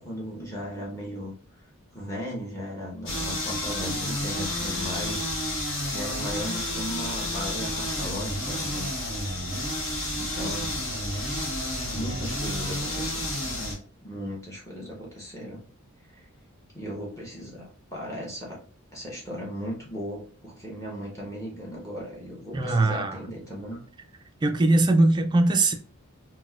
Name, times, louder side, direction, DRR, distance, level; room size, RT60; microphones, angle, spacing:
voice 1, 0.0-1.3 1.9-8.9 10.2-10.8 11.9-13.2 14.0-15.6 16.1-16.2 16.7-18.6 18.9-23.8, equal, 15° left, 1.0 m, -37 dB
sound 1, 3.1-13.8, left 1 dB, 60° left, 1.2 m, -30 dB
voice 2, 22.5-23.2 24.4-25.7, right 2 dB, 20° right, 0.3 m, -21 dB
4.0 x 2.2 x 2.3 m
head